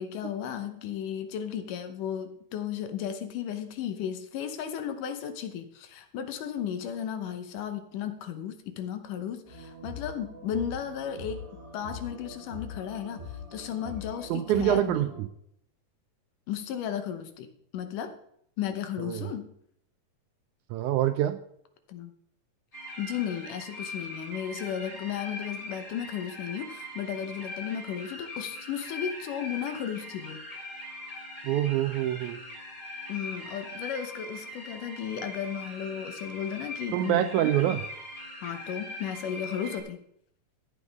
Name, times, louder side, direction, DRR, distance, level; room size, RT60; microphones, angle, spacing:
voice 1, 0.0-11.4 11.7-15.1 16.5-17.5 17.7-18.2 18.6-19.5 21.9-22.1 23.0-30.4 33.1-37.3 38.4-40.0, left 9 dB, 75° left, 9 dB, 2.5 m, -34 dB
sound 1, 9.4-15.2, left 4 dB, 25° right, 5.4 m, -43 dB
voice 2, 14.3-15.3 19.0-19.3 20.7-21.4 31.4-32.4 36.9-37.9, right 12 dB, 80° right, 10 dB, 1.8 m, -26 dB
sound 2, 22.7-39.8, left 1 dB, 10° left, 2.8 m, -41 dB
14.5 x 8.4 x 3.5 m, 0.70 s
omnidirectional pair, 3.8 m